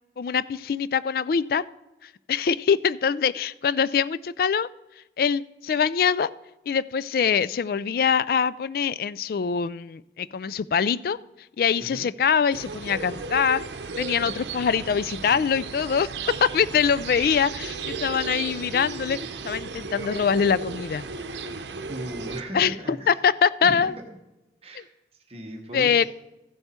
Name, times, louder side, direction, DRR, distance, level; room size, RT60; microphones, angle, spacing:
voice 1, 0.2-1.6 2.0-4.7 5.2-6.3 6.7-11.2 11.6-13.6 14.0-19.2 19.4-21.0 22.5-23.9 24.8-24.9 25.7-26.0, left 6 dB, 55° left, 18 dB, 0.3 m, -24 dB
voice 2, 11.7-12.1 21.8-23.2 23.6-24.1 24.6-24.9 25.3-26.0, right 1 dB, 35° right, 3 dB, 1.1 m, -37 dB
sound 1, 12.5-22.4, right 4 dB, 80° right, 0.8 m, -35 dB
14.0 x 8.0 x 4.3 m, 1.0 s
head